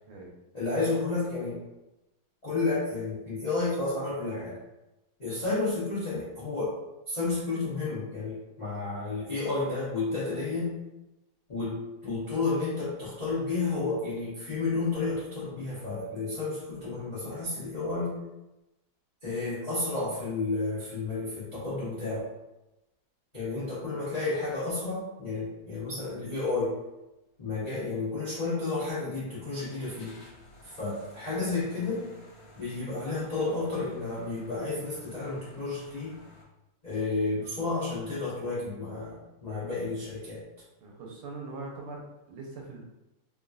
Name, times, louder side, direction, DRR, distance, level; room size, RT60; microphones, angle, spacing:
voice 1, 0.5-1.6 2.4-4.6 5.2-6.8 7.1-10.8 11.5-18.2 19.2-22.3 23.3-26.8 27.4-30.2 30.6-32.1 32.5-36.2 36.8-40.4, left 3 dB, 50° left, -11 dB, 0.4 m, -31 dB
sound 1, 27.0-27.1 29.6-36.4, left 2 dB, 85° left, 0.8 m, -53 dB
voice 2, 40.8-42.8, right 3 dB, 85° right, -2 dB, 1.6 m, -42 dB
3.6 x 2.2 x 2.5 m, 0.97 s
omnidirectional pair, 2.3 m